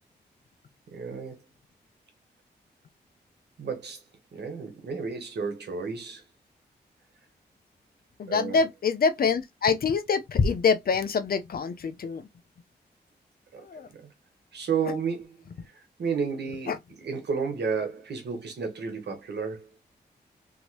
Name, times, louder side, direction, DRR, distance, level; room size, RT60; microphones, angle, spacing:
voice 1, 0.9-1.4 3.6-4.0 4.3-6.2 8.3-8.6 13.5-13.6 13.9-14.1 14.5-15.4 15.7-16.7 17.0-19.7, right 5 dB, 70° right, 1.2 m, -32 dB
voice 2, 8.2-12.3 13.6-13.9 16.7-16.8, left 5 dB, 55° left, 0.6 m, -25 dB
2.9 x 2.8 x 2.8 m
supercardioid pair, 45°, 18 cm